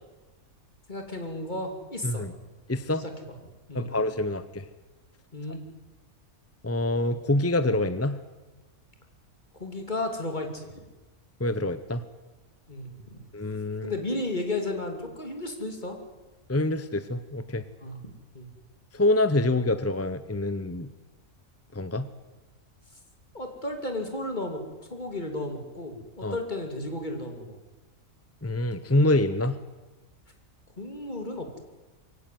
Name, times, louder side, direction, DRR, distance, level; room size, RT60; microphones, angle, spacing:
voice 1, 0.9-2.3 3.0-3.1 3.7-3.9 5.3-5.6 9.6-10.7 12.7-13.2 13.8-16.0 17.8-18.0 18.3-18.5 23.3-24.6 24.9-27.6 30.8-31.6, left 2 dB, 35° left, 4 dB, 3.0 m, -33 dB
voice 2, 2.7-3.0 3.7-4.7 6.6-8.2 11.4-12.0 13.3-13.9 16.5-17.6 18.9-20.9 21.7-22.1 26.2-26.4 28.4-29.6, left 2 dB, 15° left, 13 dB, 0.5 m, -26 dB
23.0 x 16.5 x 9.4 m, 1.2 s
omnidirectional pair, 1.5 m